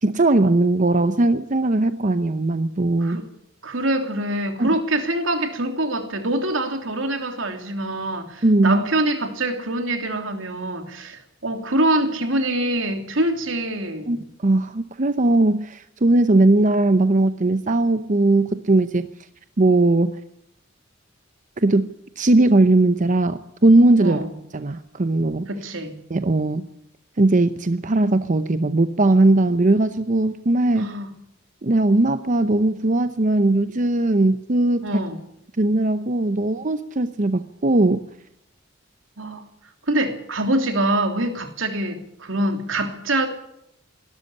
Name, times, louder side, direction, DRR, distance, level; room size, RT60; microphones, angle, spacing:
voice 1, 0.0-3.2 4.6-4.7 8.4-8.8 14.1-14.2 14.4-19.1 19.6-20.2 21.6-21.9 22.2-24.2 24.5-25.5 26.1-26.7 27.2-30.9 31.6-34.9 35.6-38.0, right 2 dB, 40° right, 11 dB, 0.8 m, -19 dB
voice 2, 3.6-14.2 24.0-24.3 25.5-26.0 30.8-31.1 34.8-35.2 39.2-39.4 39.9-43.3, right 1 dB, 80° right, 6 dB, 3.1 m, -24 dB
20.5 x 13.0 x 9.9 m, 0.76 s
head